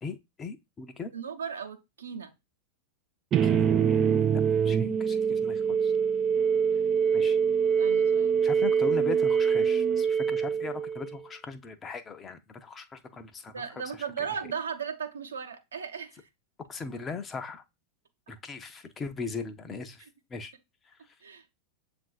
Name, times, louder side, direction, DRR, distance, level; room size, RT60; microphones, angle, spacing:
voice 1, 0.0-1.1 3.4-5.9 7.1-7.4 8.4-13.8 14.2-14.3 16.7-17.6 18.3-20.5, left 4 dB, 20° left, 0.6 m, -39 dB
voice 2, 1.1-2.3 7.8-8.4 13.5-16.2 21.2-21.4, right 7 dB, 70° right, 0.8 m, -36 dB
sound 1, 3.3-11.2, right 7 dB, 30° right, 0.3 m, -24 dB
7.5 x 2.5 x 2.3 m
figure-of-eight pair, 90°, 0 cm